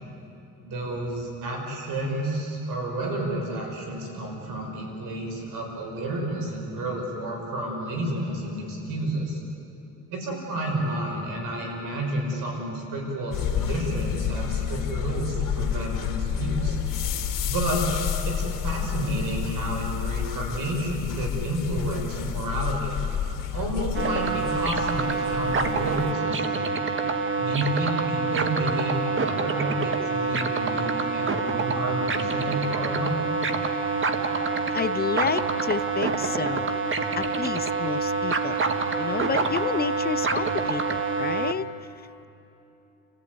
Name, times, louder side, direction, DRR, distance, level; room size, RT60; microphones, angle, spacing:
voice 1, 0.6-9.4 10.1-16.8 17.4-17.8 18.2-23.0 23.5-26.6 27.4-33.1, right 1 dB, 70° right, 1 dB, 6.1 m, -30 dB
sound 1, 13.3-26.1, left 9 dB, 70° left, 2.6 m, -30 dB
sound 2, 23.9-41.5, right 4 dB, 35° right, 1.7 m, -26 dB
voice 2, 34.7-36.7 37.2-38.6 39.0-41.7, left 7 dB, 30° left, 16 dB, 0.5 m, -30 dB
29.5 x 15.0 x 9.6 m, 3.0 s
cardioid pair, 100°, 33 cm